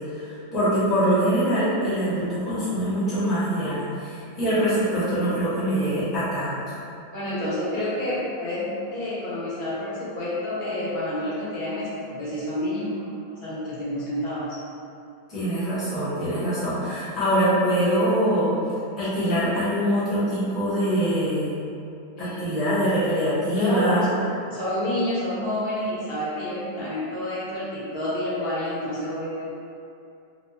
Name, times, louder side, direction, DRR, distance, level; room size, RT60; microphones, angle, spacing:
voice 1, 0.1-6.8 15.3-18.6 19.0-21.5 22.2-24.0, equal, ahead, -12 dB, 0.6 m, -24 dB
voice 2, 7.1-14.6 22.2-22.5 23.5-24.2 24.5-29.7, left 1 dB, 45° left, -9 dB, 0.8 m, -29 dB
4.3 x 2.0 x 2.8 m, 2.6 s
omnidirectional pair, 1.9 m